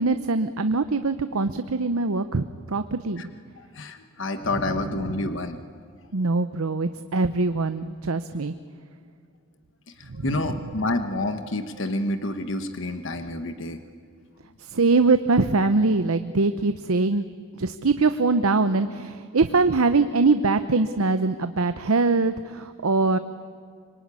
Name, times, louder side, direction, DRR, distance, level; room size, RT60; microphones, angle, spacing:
voice 1, 0.0-3.2 4.5-5.3 6.1-8.5 10.2-10.5 14.6-17.3 17.6-23.2, right 3 dB, 85° right, 10 dB, 0.8 m, -23 dB
voice 2, 3.6-5.6 10.2-13.8, left 2 dB, 60° left, 8 dB, 1.2 m, -28 dB
26.0 x 22.5 x 9.8 m, 2.2 s
head